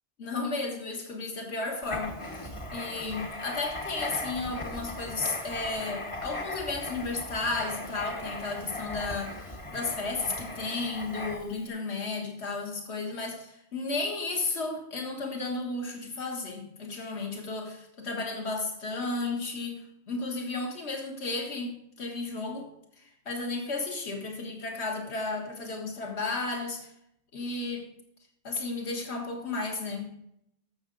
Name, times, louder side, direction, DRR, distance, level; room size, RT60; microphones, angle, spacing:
voice 1, 0.2-22.7 23.0-26.9 27.3-27.9 28.4-30.3, left 3 dB, 60° left, 2 dB, 1.9 m, -33 dB
Writing, 1.8-11.6, left 1 dB, 25° left, 1.1 m, -38 dB
14.5 x 6.6 x 3.9 m, 0.76 s
omnidirectional pair, 1.3 m